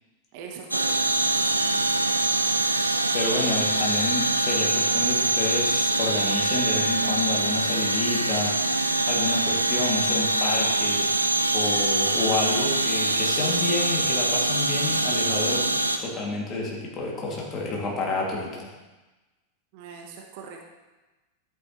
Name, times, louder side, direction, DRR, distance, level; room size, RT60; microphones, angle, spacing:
voice 1, 0.3-2.2 19.7-20.6, right 6 dB, 45° right, 1 dB, 1.3 m, -43 dB
sound 1, 0.7-16.0, right 2 dB, 85° right, 0.5 m, -24 dB
voice 2, 3.1-8.6 9.1-11.3 11.5-15.6 16.0-18.7, left 3 dB, 30° left, -3 dB, 2.8 m, -29 dB
11.5 x 8.8 x 3.3 m, 1.1 s
figure-of-eight pair, 90°, 0 cm